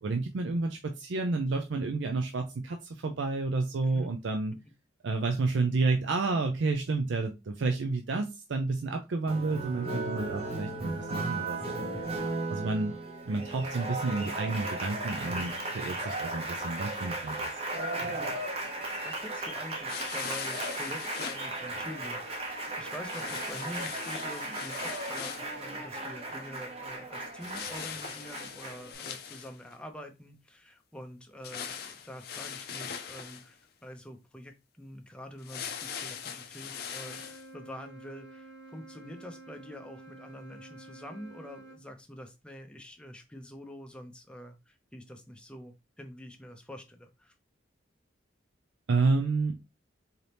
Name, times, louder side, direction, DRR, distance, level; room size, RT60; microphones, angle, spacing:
voice 1, 0.0-4.5 5.0-11.9 12.5-12.9 13.3-17.6 48.9-49.8, right 3 dB, 70° right, 5 dB, 0.4 m, -30 dB
Applause, 9.3-28.9, right 2 dB, 30° right, 0.7 m, -36 dB
voice 2, 18.8-47.3, left 1 dB, 5° left, 4 dB, 0.5 m, -46 dB
sound 1, 19.9-21.4 23.0-25.5 27.4-29.7 31.4-33.5 35.4-37.4, left 7 dB, 50° left, 0.5 m, -40 dB
Wind instrument woodwind instrument, 36.9-41.8, right 2 dB, 85° right, 1.8 m, -50 dB
4.0 x 2.8 x 3.3 m, 0.25 s
head